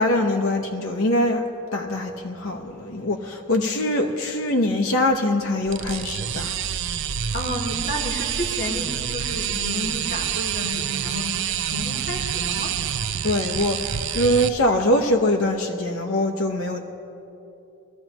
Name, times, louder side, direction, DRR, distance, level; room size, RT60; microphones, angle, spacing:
voice 1, 0.0-1.5 1.7-6.6 13.2-16.8, left 1 dB, 70° left, 2 dB, 0.8 m, -23 dB
sound 1, 5.7-14.5, right 9 dB, 55° right, 0.4 m, -27 dB
voice 2, 7.3-11.3 11.6-12.8, left 1 dB, 50° left, -2 dB, 2.1 m, -31 dB
23.5 x 13.0 x 3.0 m, 2.8 s
head